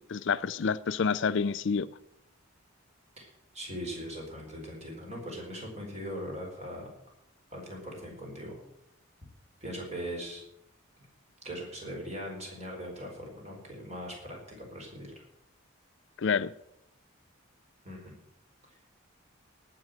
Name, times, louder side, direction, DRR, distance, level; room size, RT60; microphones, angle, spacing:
voice 1, 0.0-1.9 16.2-16.5, left 5 dB, 60° left, 0.4 m, -28 dB
voice 2, 3.2-6.9 7.5-8.6 9.6-10.4 11.4-15.1 17.8-18.1 18.7-18.8, equal, 30° right, 4.6 m, -40 dB
18.5 x 6.3 x 7.8 m
head